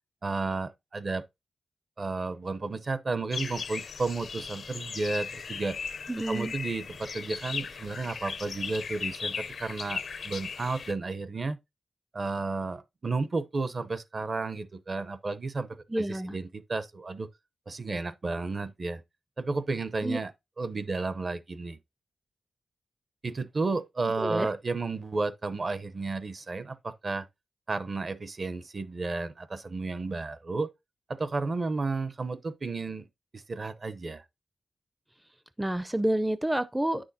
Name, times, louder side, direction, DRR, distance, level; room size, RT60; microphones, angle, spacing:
voice 1, 0.2-1.2 2.0-5.8 6.3-11.6 12.1-15.7 16.0-17.3 17.7-19.0 19.4-20.3 20.6-21.8 23.2-27.2 27.7-30.7 31.1-33.1 33.3-34.2, right 3 dB, 45° right, 0.7 m, -32 dB
sound 1, 3.3-10.9, left 5 dB, 70° left, 0.6 m, -37 dB
voice 2, 6.1-6.5 15.9-16.4 20.0-20.2 24.2-24.5 35.6-37.1, right 1 dB, 10° right, 0.4 m, -29 dB
9.3 x 6.2 x 2.7 m
cardioid pair, 75°, 0 cm